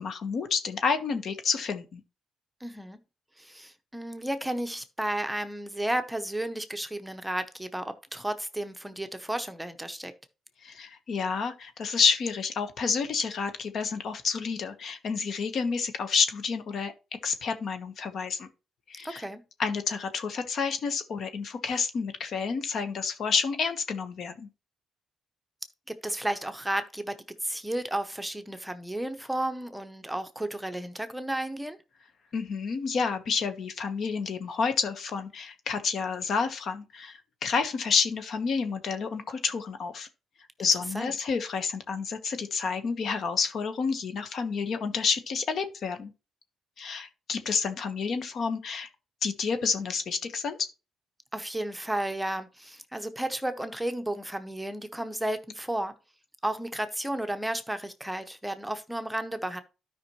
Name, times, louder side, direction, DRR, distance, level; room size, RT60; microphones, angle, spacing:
voice 1, 0.0-2.0 10.6-16.9 17.2-18.5 18.9-19.2 19.6-24.5 32.3-40.1 40.6-46.1 46.8-48.9 49.2-50.7, left 5 dB, 60° left, 1.1 m, -29 dB
voice 2, 2.6-3.0 3.4-10.1 19.0-19.4 25.9-31.8 40.6-40.7 40.9-41.1 51.3-55.9 56.4-59.6, right 1 dB, 5° right, 0.8 m, -33 dB
12.5 x 5.2 x 3.0 m
cardioid pair, 90°, 0 cm